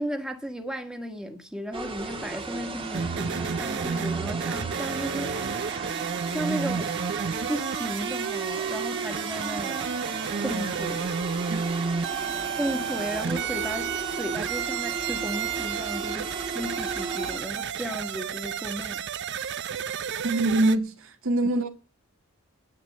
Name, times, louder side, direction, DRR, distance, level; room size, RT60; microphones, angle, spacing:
voice 1, 0.0-5.4 6.3-6.9 7.5-9.8 10.4-11.1 12.6-19.0, equal, 5° right, 1.6 m, -34 dB
sound 1, 1.7-17.4, right 4 dB, 25° right, 1.4 m, -35 dB
sound 2, 2.9-20.8, right 6 dB, 60° right, 0.6 m, -31 dB
voice 2, 11.5-11.8 12.4-12.5 20.0-21.7, right 2 dB, 75° right, 2.0 m, -25 dB
10.5 x 9.3 x 8.4 m
head